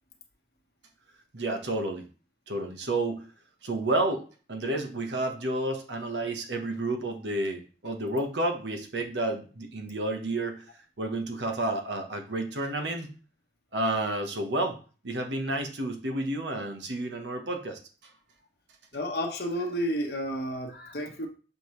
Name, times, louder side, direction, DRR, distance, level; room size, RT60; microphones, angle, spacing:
voice 1, 1.3-2.1 2.5-3.3 3.6-4.2 4.5-10.6 11.0-13.1 13.7-14.8 15.0-18.1, right 2 dB, 80° right, 4 dB, 1.2 m, -30 dB
voice 2, 18.9-21.3, equal, 60° left, 2 dB, 1.2 m, -31 dB
6.9 x 5.1 x 3.2 m, 0.37 s
head